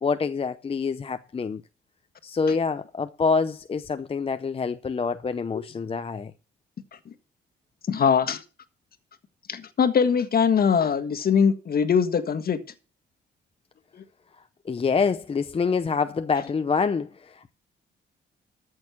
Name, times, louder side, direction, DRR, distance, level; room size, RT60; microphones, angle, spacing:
voice 1, 0.0-1.6 2.2-6.3 14.7-17.5, left 5 dB, 30° left, 0.7 m, -26 dB
voice 2, 7.9-8.4 9.5-12.6, left 7 dB, 50° left, 1.5 m, -22 dB
13.5 x 6.4 x 5.9 m
cardioid pair, 90°, 20 cm